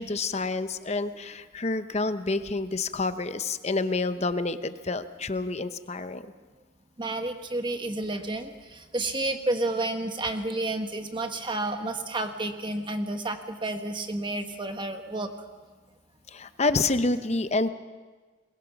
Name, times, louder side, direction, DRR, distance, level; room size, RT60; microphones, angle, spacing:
voice 1, 0.0-6.2 16.3-17.7, left 3 dB, 35° left, 11 dB, 0.8 m, -28 dB
voice 2, 7.0-15.3, right 2 dB, 25° right, 6 dB, 1.3 m, -31 dB
22.0 x 21.0 x 5.9 m, 1.4 s
head